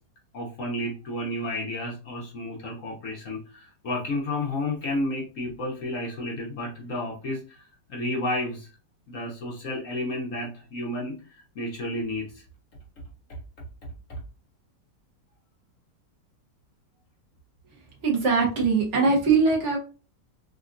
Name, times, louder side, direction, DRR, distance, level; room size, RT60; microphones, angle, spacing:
voice 1, 0.3-8.7 9.1-12.4 14.1-14.2, left 1 dB, 60° left, -2 dB, 0.9 m, -31 dB
voice 2, 18.0-19.8, right 4 dB, 50° right, -1 dB, 1.0 m, -21 dB
3.6 x 2.2 x 2.5 m, 0.35 s
omnidirectional pair, 2.0 m